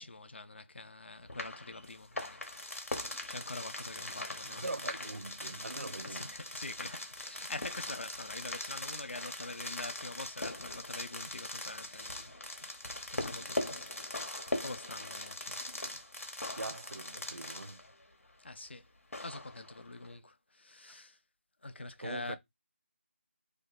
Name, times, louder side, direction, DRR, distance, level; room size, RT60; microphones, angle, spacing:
voice 1, 0.0-3.0 3.3-4.7 6.0-13.9 14.6-15.6 18.4-18.8 19.2-21.2 21.6-22.4, left 2 dB, 55° left, 0.6 m, -45 dB
sound 1, 1.3-18.0 19.1-20.1, left 2 dB, 85° left, 1.1 m, -41 dB
voice 2, 4.4-6.4 15.6-16.0 16.6-17.8 20.9-21.0 21.8-22.4, right 2 dB, 90° right, 0.5 m, -43 dB
2.7 x 2.2 x 4.0 m
figure-of-eight pair, 170°, 7 cm